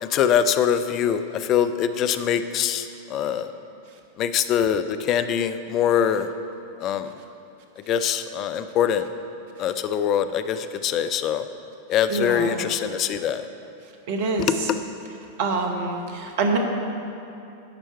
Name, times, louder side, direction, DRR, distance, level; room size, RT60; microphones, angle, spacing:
voice 1, 0.0-3.5 4.2-6.3 6.8-7.1 7.9-9.0 9.6-11.4 11.9-13.5, left 9 dB, 35° left, 11 dB, 0.3 m, -23 dB
voice 2, 12.1-12.5 14.1-14.7 15.4-16.6, right 3 dB, 50° right, 3 dB, 0.9 m, -25 dB
11.0 x 4.4 x 4.5 m, 2.7 s
figure-of-eight pair, 90°, 0 cm